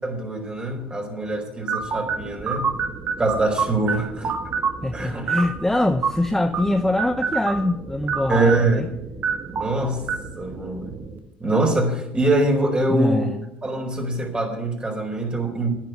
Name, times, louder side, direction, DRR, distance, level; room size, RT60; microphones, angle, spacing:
voice 1, 0.0-2.7 3.2-4.3 4.9-5.3 8.3-8.8 9.5-10.0 10.4-10.9 11.4-13.3 13.6-15.7, right 2 dB, 20° right, 4.4 m, -23 dB
sound 1, 1.7-11.2, right 5 dB, 45° right, 2.0 m, -29 dB
voice 2, 4.8-8.9 12.9-13.4, left 1 dB, 5° left, 0.8 m, -23 dB
10.5 x 10.5 x 8.2 m
supercardioid pair, 75°, 5 cm